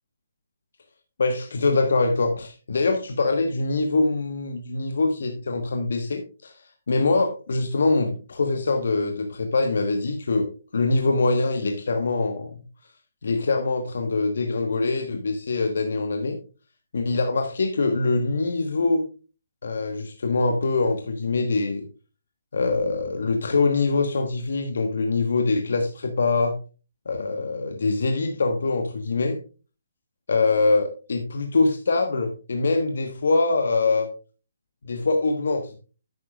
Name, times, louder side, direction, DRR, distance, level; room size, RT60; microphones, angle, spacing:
voice 1, 1.2-6.5 6.9-12.5 13.2-16.4 16.9-19.1 19.6-21.9 22.5-26.6 27.0-29.4 30.3-34.1 34.8-35.8, left 3 dB, 70° left, 5 dB, 1.3 m, -23 dB
11.0 x 9.4 x 2.4 m, 0.34 s
hypercardioid pair, 155°, 0 cm